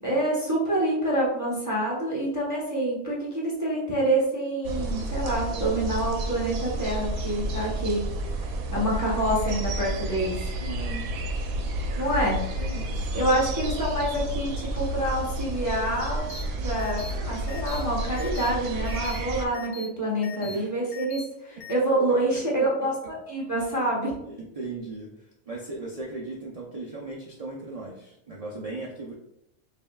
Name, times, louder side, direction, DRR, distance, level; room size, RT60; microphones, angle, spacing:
voice 1, 0.0-8.0 8.7-10.5 12.0-12.4 13.1-16.3 16.6-22.9 23.3-24.1, right 1 dB, 15° right, -5 dB, 0.8 m, -27 dB
sound 1, 4.6-19.5, right 1 dB, 90° right, 1.1 m, -31 dB
voice 2, 10.6-11.2 12.6-13.2 20.4-20.7 22.3-22.7 24.2-29.1, right 3 dB, 75° right, -3 dB, 0.3 m, -38 dB
sound 2, 16.3-16.4 16.8-17.1 17.5-17.8 18.2-18.5 18.9-19.2 19.5-19.9 20.2-20.6 20.9-21.2 21.6-21.7, left 6 dB, 60° left, 0.8 m, -40 dB
5.4 x 2.6 x 2.3 m, 0.81 s
omnidirectional pair, 1.4 m